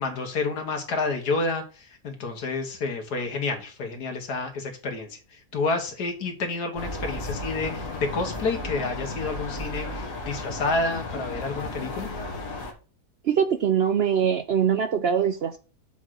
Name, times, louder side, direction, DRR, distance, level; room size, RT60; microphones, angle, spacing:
voice 1, 0.0-12.1, left 3 dB, 90° left, 5 dB, 1.9 m, -29 dB
sound 1, 6.8-12.7, left 2 dB, 60° left, 1.7 m, -34 dB
voice 2, 13.2-15.6, right 8 dB, 65° right, 8 dB, 0.6 m, -23 dB
7.1 x 3.8 x 6.3 m, 0.35 s
omnidirectional pair, 1.6 m